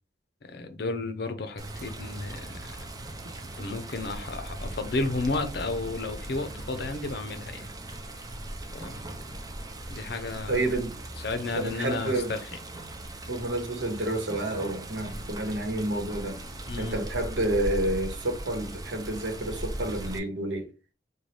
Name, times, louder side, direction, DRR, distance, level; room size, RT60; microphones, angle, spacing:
voice 1, 0.4-2.8 3.4-7.7 8.7-9.1 9.9-10.6 11.2-12.4 16.7-17.0, left 3 dB, 60° left, 0.6 m, -33 dB
Water, 1.6-20.2, right 1 dB, 20° right, 0.4 m, -39 dB
voice 2, 10.5-11.0 11.5-12.3 13.3-16.4 16.8-20.7, right 1 dB, 85° right, 1.0 m, -29 dB
3.2 x 2.3 x 4.1 m
head